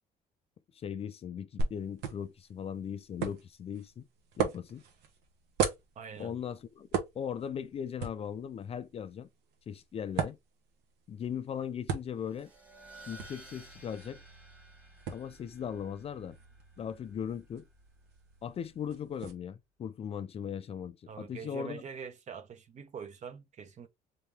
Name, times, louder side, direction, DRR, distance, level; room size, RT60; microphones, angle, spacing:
voice 1, 0.7-4.1 4.4-4.8 6.2-6.9 7.1-9.3 9.7-10.4 11.1-12.5 13.1-14.2 15.1-16.4 16.8-17.7 18.4-21.8, left 8 dB, 35° left, 0.4 m, -38 dB
sound 1, 1.6-19.3, right 6 dB, 85° right, 1.0 m, -40 dB
voice 2, 6.0-6.3 21.1-23.9, right 6 dB, 45° right, 0.8 m, -44 dB
sound 2, 12.1-19.2, right 2 dB, 10° right, 1.4 m, -55 dB
3.7 x 2.8 x 3.4 m
cardioid pair, 110°, 17 cm